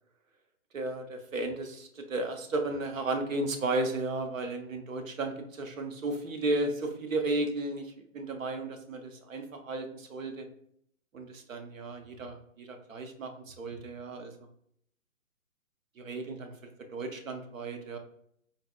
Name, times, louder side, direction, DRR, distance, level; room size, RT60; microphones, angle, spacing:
voice 1, 0.7-10.5 11.1-14.3 16.0-18.0, right 2 dB, 65° right, 5 dB, 0.7 m, -34 dB
4.0 x 2.2 x 2.2 m, 0.69 s
hypercardioid pair, 175°, 43 cm